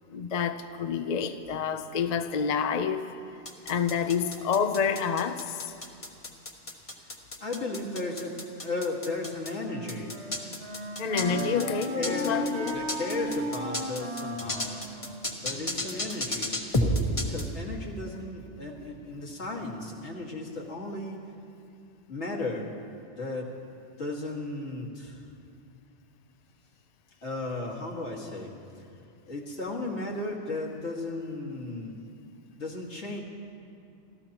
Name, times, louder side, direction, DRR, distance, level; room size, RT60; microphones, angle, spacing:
voice 1, 0.1-3.1 3.7-5.6 11.0-12.8, left 6 dB, 50° left, 8 dB, 0.5 m, -28 dB
sound 1, 3.5-9.5 9.9-17.4, left 1 dB, 30° left, 1.2 m, -31 dB
voice 2, 7.4-10.1 11.3-12.4 12.7-14.7 15.4-21.2 22.1-22.7 23.2-23.5 24.0-25.2 27.2-28.5 29.3-31.9 32.6-33.2, left 2 dB, 70° left, -3 dB, 2.3 m, -35 dB
Wind instrument woodwind instrument, 9.1-16.3, equal, 65° right, 3.6 m, -36 dB
29.5 x 14.5 x 3.0 m, 2.5 s
omnidirectional pair, 1.2 m